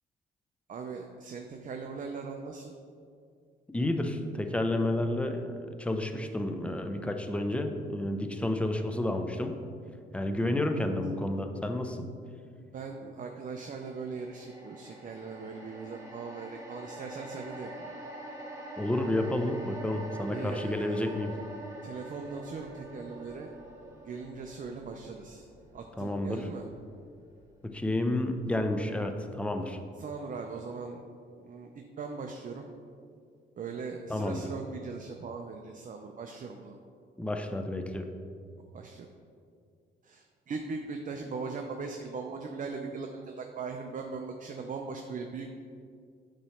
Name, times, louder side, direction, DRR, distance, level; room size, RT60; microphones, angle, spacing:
voice 1, 0.7-2.7 10.8-10.9 12.6-17.7 20.3-21.1 21.8-23.5 24.0-25.5 25.7-26.7 30.0-31.0 31.4-32.7 33.6-36.8 38.7-39.1 40.0-45.6, right 4 dB, 40° right, 3 dB, 0.6 m, -40 dB
voice 2, 3.7-5.5 5.8-9.6 10.1-12.1 18.8-21.3 26.0-26.5 27.6-29.8 34.1-34.4 37.2-38.1, left 1 dB, 5° left, 5 dB, 0.6 m, -30 dB
sound 1, 13.5-27.9 28.2-28.4, right 1 dB, 15° right, 1.7 m, -46 dB
8.8 x 3.1 x 5.6 m, 2.2 s
cardioid pair, 90°, 20 cm